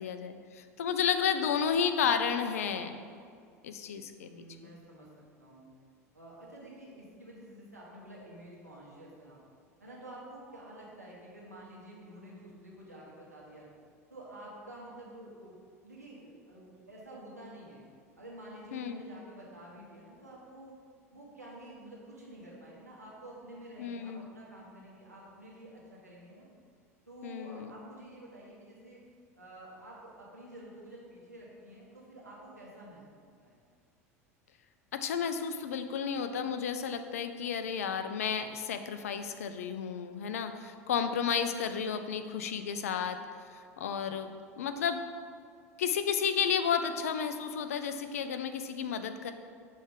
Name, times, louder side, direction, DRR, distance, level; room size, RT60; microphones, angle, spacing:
voice 1, 0.0-3.0 3.6-4.3 4.6-4.7 18.7-19.0 23.8-24.3 27.2-27.7 34.9-43.2 43.5-45.0 45.8-49.3, left 7 dB, 65° left, 8 dB, 0.4 m, -32 dB
voice 2, 4.2-5.7 6.1-9.4 9.8-13.7 14.1-15.6 15.8-17.8 18.2-20.7 21.1-26.5 27.1-29.0 29.4-33.0 33.4-33.6, right 1 dB, 85° right, -6 dB, 1.5 m, -49 dB
6.3 x 3.3 x 5.1 m, 2.2 s
figure-of-eight pair, 75°, 8 cm